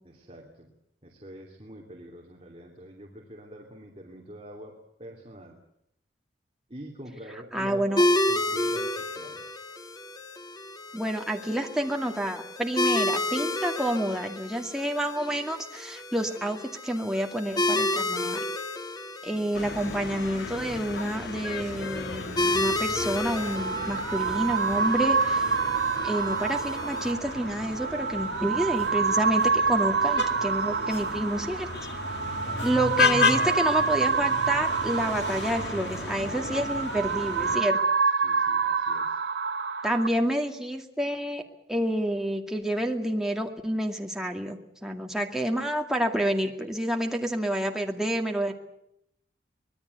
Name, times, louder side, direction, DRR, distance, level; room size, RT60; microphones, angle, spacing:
voice 1, 0.0-0.7 1.0-4.7 5.0-5.6 6.7-9.6 19.3-19.5 32.2-32.8 38.2-39.2, right 1 dB, 30° right, 0 dB, 2.9 m, -45 dB
voice 2, 7.5-8.0 10.9-18.4 19.2-25.5 26.0-31.7 32.6-37.8 39.8-41.4 41.7-48.5, right 1 dB, 5° right, 2 dB, 2.2 m, -29 dB
sound 1, 8.0-27.1, left 1 dB, 20° left, 1.6 m, -31 dB
sound 2, 19.5-37.6, left 4 dB, 70° left, 2.2 m, -33 dB
sound 3, 23.1-40.1, right 5 dB, 85° right, 1.4 m, -27 dB
25.0 x 19.5 x 8.2 m, 0.79 s
head